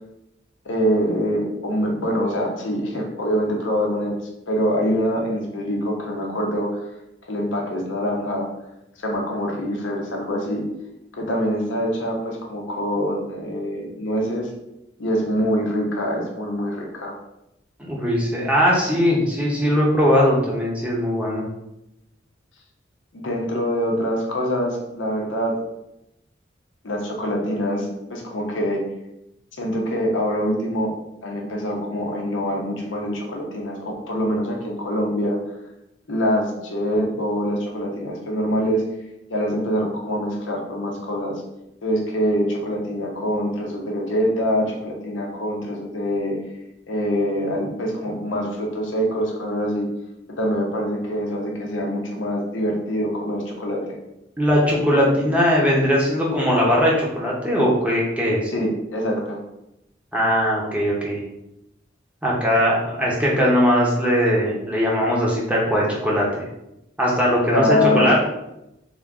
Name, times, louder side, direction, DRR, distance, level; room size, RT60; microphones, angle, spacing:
voice 1, 0.6-4.2 4.5-6.9 7.3-8.5 9.0-10.6 11.2-14.5 15.0-17.2 23.1-25.6 26.8-28.8 29.6-30.9 31.2-35.4 36.1-38.8 39.3-41.4 41.8-46.4 46.9-49.9 50.4-54.0 58.5-59.4 67.5-68.2, equal, 85° left, 0 dB, 0.8 m, -24 dB
voice 2, 17.8-21.5 54.4-58.5 60.1-61.2 62.2-66.4 67.0-68.2, equal, 5° right, -4 dB, 0.8 m, -20 dB
3.6 x 2.5 x 3.6 m, 0.87 s
head